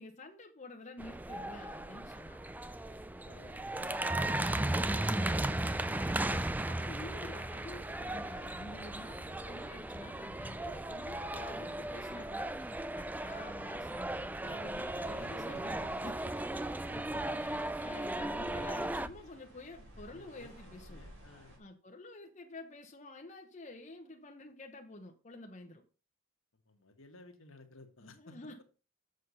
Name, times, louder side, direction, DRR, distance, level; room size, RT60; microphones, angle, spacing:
voice 1, 0.0-2.4 6.7-12.7 12.9-16.3 17.3-21.0 21.6-25.8 28.0-28.6, left 2 dB, 35° left, 3 dB, 1.0 m, -49 dB
sound 1, 1.0-19.1, right 1 dB, 10° right, 0.4 m, -36 dB
voice 2, 3.3-6.5 15.2-15.6 16.8-17.6 20.0-21.6 26.6-28.6, left 2 dB, 70° left, 5 dB, 1.6 m, -55 dB
sound 2, 7.6-21.6, equal, 65° right, 4.3 m, -57 dB
7.3 x 6.7 x 5.5 m, 0.35 s
head